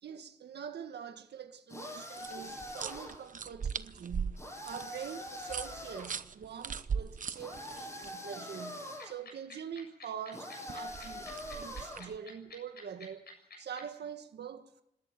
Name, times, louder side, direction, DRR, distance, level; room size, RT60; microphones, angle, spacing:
voice 1, 0.0-13.3 13.6-14.8, right 8 dB, 80° right, 1.6 m, -44 dB
sound 1, 1.7-3.3 4.4-6.2 7.4-9.2 10.3-12.1, left 1 dB, 15° left, 7.7 m, -44 dB
sound 2, 2.2-8.1 10.7-12.2, right 6 dB, 50° right, 0.8 m, -40 dB
sound 3, 9.0-13.8, left 5 dB, 70° left, 7.9 m, -49 dB
26.0 x 13.0 x 9.1 m
wide cardioid pair, 110°, 17 cm